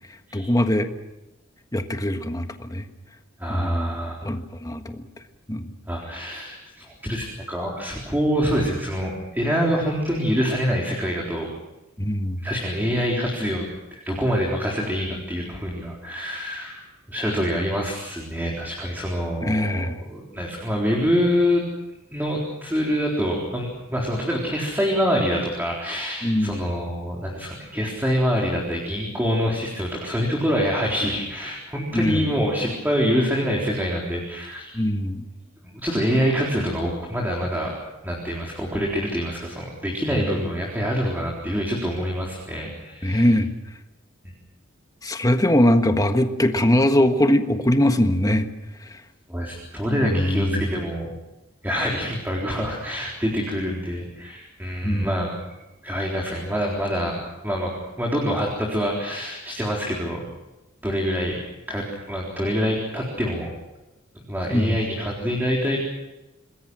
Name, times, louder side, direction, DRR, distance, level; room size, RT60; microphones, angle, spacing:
voice 1, 0.3-0.9 1.7-2.9 3.5-3.9 4.2-5.0 5.5-5.7 12.0-12.4 19.4-20.0 26.2-26.7 31.9-32.2 34.7-35.2 43.0-43.5 45.0-48.5 49.9-50.6 54.8-55.2 64.5-64.8, left 1 dB, 20° left, 7 dB, 1.5 m, -21 dB
voice 2, 3.4-4.1 5.9-11.5 12.4-13.6 13.9-16.8 17.1-21.6 22.1-34.8 35.6-37.7 38.0-43.3 49.3-51.1 51.6-55.3 55.8-57.2 57.4-60.3 60.8-61.4 61.7-63.5 64.1-65.8, equal, 10° right, -2 dB, 4.0 m, -25 dB
27.5 x 21.0 x 6.3 m, 1.0 s
head